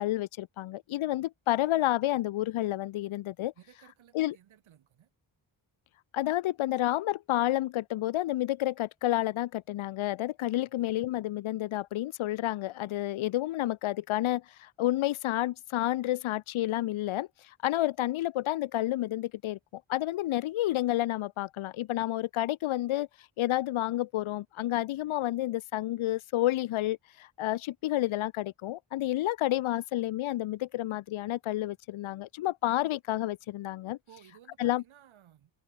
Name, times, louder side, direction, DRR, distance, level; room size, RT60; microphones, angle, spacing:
voice 1, 0.0-3.5 4.1-4.4 6.1-23.1 23.4-34.0 34.6-34.8, left 15 dB, 80° left, 0.6 m, -30 dB
voice 2, 3.6-5.1 10.7-10.9 34.1-35.5, right 10 dB, 75° right, 2.3 m, -57 dB
wide cardioid pair, 170°, 48 cm